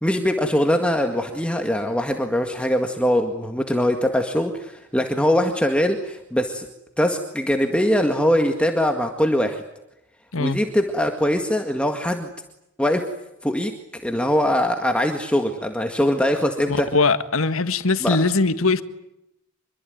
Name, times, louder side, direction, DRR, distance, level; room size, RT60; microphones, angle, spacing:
voice 1, 0.0-6.7 7.0-9.6 10.4-12.3 12.8-13.0 13.4-13.7 14.0-16.9 18.0-18.2, equal, 5° left, 1.9 m, -22 dB
voice 2, 16.7-18.8, left 3 dB, 75° left, 1.7 m, -21 dB
26.5 x 23.0 x 9.4 m
head